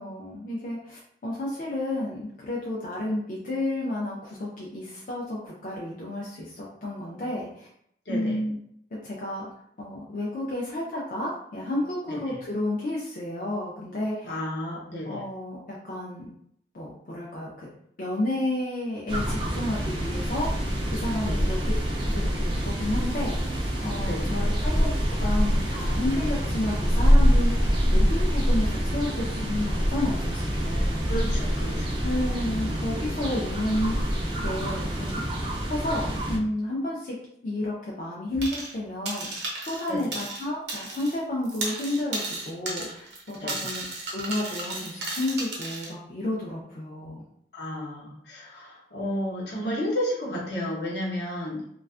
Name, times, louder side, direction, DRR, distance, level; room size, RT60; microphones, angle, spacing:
voice 1, 0.0-7.7 8.1-8.6 8.9-9.5 9.8-14.4 15.0-16.3 16.7-17.7 18.0-21.6 22.0-23.4 23.8-31.1 32.0-34.2 34.4-35.2 35.7-37.2 37.4-47.2, left 1 dB, 50° left, -5 dB, 0.4 m, -31 dB
voice 2, 8.1-8.4 12.1-12.4 14.2-15.2 21.2-21.5 24.0-24.3 31.0-32.0 39.9-40.1 43.4-43.7 47.5-51.6, left 1 dB, 75° left, -4 dB, 0.8 m, -32 dB
sound 1, 19.1-36.4, equal, 30° right, 0.3 m, -25 dB
sound 2, 38.4-38.8 39.1-41.2 41.4-45.9, right 2 dB, 80° right, 0.7 m, -34 dB
2.4 x 2.3 x 2.3 m, 0.70 s
head